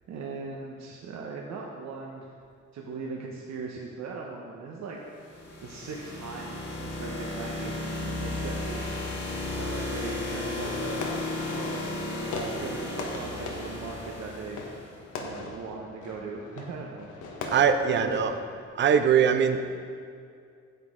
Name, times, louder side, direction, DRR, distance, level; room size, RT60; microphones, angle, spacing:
voice 1, 0.1-2.3 2.7-5.3 5.6-9.1 9.6-11.1 11.6-14.6 15.2-17.1 17.8-18.3, right 4 dB, 65° right, -1 dB, 1.0 m, -39 dB
sound 1, 5.2-15.0, left 2 dB, 55° left, 1.9 m, -34 dB
Fireworks, 10.6-18.7, left 3 dB, 80° left, 1.2 m, -40 dB
voice 2, 17.5-18.3 18.8-19.6, right 7 dB, 40° right, 8 dB, 0.6 m, -22 dB
9.2 x 7.9 x 3.7 m, 2.3 s
cardioid pair, 90°, 30 cm